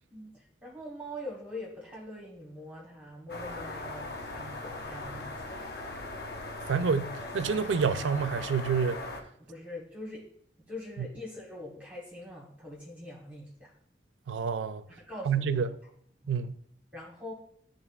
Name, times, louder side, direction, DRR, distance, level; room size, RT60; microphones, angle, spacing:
voice 1, 0.1-5.8 9.4-10.2 10.7-13.7 15.0-15.7 16.2-16.3 16.9-17.3, left 1 dB, 10° right, 1.1 m, -43 dB
sound 1, 3.3-9.2, left 2 dB, 60° left, 1.0 m, -39 dB
voice 2, 6.7-9.0 11.0-11.1 14.3-14.8 15.3-15.7 16.3-16.6, right 6 dB, 90° right, 0.4 m, -28 dB
11.0 x 3.8 x 2.4 m
head